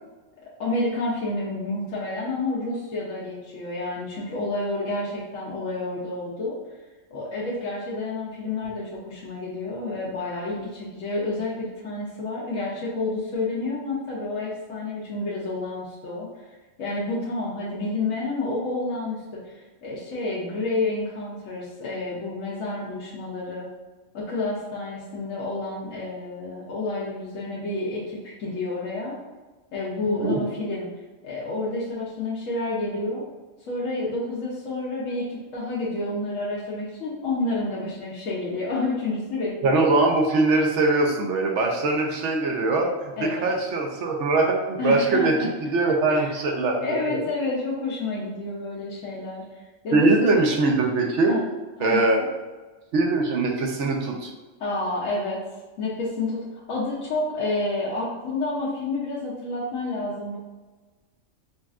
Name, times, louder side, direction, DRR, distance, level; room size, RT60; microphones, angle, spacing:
voice 1, 0.6-6.6 7.1-16.3 16.8-23.7 24.1-29.2 29.7-30.9 31.2-33.3 33.7-39.8 43.2-43.5 44.8-45.5 45.9-46.3 46.8-49.4 49.8-50.1 51.3-51.4 51.8-52.1 54.6-55.4 55.8-60.4, left 2 dB, 80° left, -6 dB, 1.1 m, -29 dB
voice 2, 39.6-45.3 45.6-47.2 49.9-51.3 51.8-52.2 52.9-54.3, right 3 dB, 70° right, 1 dB, 1.0 m, -22 dB
5.2 x 2.4 x 2.4 m, 1.2 s
omnidirectional pair, 1.3 m